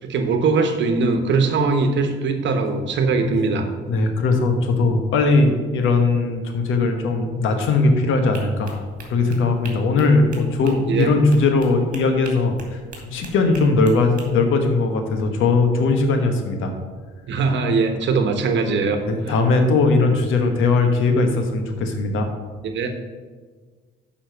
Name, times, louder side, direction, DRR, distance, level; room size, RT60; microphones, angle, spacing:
voice 1, 0.0-3.7 10.6-11.2 17.3-19.4 22.6-22.9, right 4 dB, 65° right, 6 dB, 1.2 m, -21 dB
voice 2, 3.9-12.6 13.0-16.7 19.1-22.3, left 3 dB, 85° left, 5 dB, 1.2 m, -19 dB
sound 1, 8.3-14.3, right 4 dB, 40° right, 2.2 m, -42 dB
6.7 x 5.6 x 6.7 m, 1.5 s
cardioid pair, 90°, 20 cm